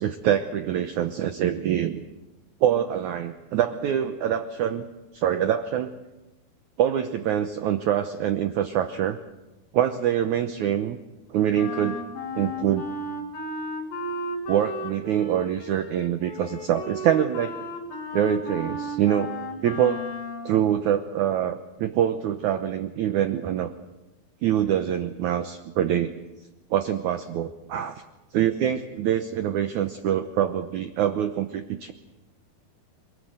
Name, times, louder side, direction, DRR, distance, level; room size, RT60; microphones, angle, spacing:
voice 1, 0.0-2.0 2.6-4.9 5.1-5.9 6.8-9.2 9.7-11.0 11.3-12.0 12.3-12.9 14.5-17.5 18.1-19.3 19.6-20.1 20.4-23.7 24.4-26.1 26.7-28.0 28.3-31.9, right 10 dB, 75° right, 8 dB, 1.8 m, -25 dB
Wind instrument woodwind instrument, 11.5-20.5, left 1 dB, 65° left, 4.9 m, -34 dB
27.0 x 19.5 x 7.9 m, 1.0 s
omnidirectional pair, 4.6 m